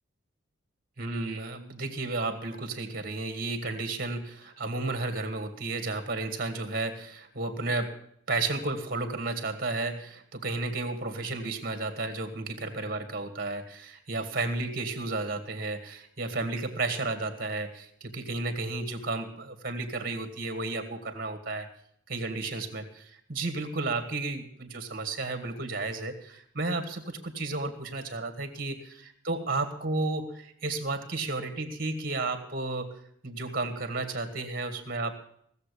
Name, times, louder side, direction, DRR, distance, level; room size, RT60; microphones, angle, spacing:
voice 1, 1.0-8.0 8.3-21.7 22.1-32.9 33.2-35.1, right 3 dB, 45° right, 7 dB, 2.0 m, -33 dB
17.5 x 7.3 x 8.4 m, 0.67 s
head